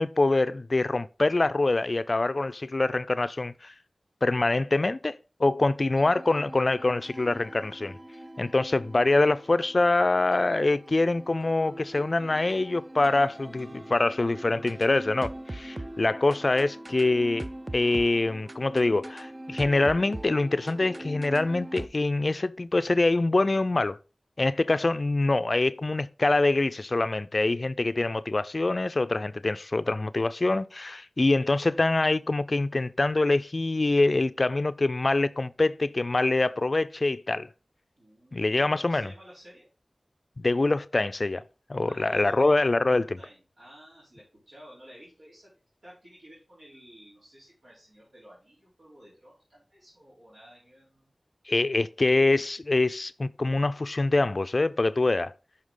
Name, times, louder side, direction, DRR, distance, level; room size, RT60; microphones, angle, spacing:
voice 1, 0.0-3.7 4.2-8.0 8.4-17.5 17.7-24.0 24.4-37.5 38.3-39.1 40.4-41.4 41.7-43.2 51.5-55.3, left 2 dB, 55° left, 0.3 m, -25 dB
sound 1, 6.0-21.9, right 1 dB, 35° right, 0.5 m, -42 dB
voice 2, 38.0-39.7 41.9-42.6 43.2-51.1, equal, 90° right, 3.3 m, -52 dB
6.4 x 5.6 x 3.7 m
wide cardioid pair, 45°, 0 cm